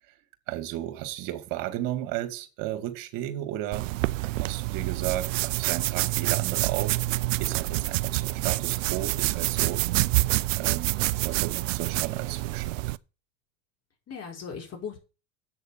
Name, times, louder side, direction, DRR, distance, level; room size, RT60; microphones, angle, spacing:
voice 1, 0.5-3.9 4.4-7.0 7.4-9.8 10.6-12.8, right 13 dB, 55° right, 2.5 m, -34 dB
sound 1, 3.7-13.0, right 19 dB, 75° right, 0.6 m, -27 dB
voice 2, 10.8-11.3 14.1-15.0, left 6 dB, 40° left, 4.9 m, -39 dB
8.5 x 6.5 x 6.8 m
hypercardioid pair, 95°, 39 cm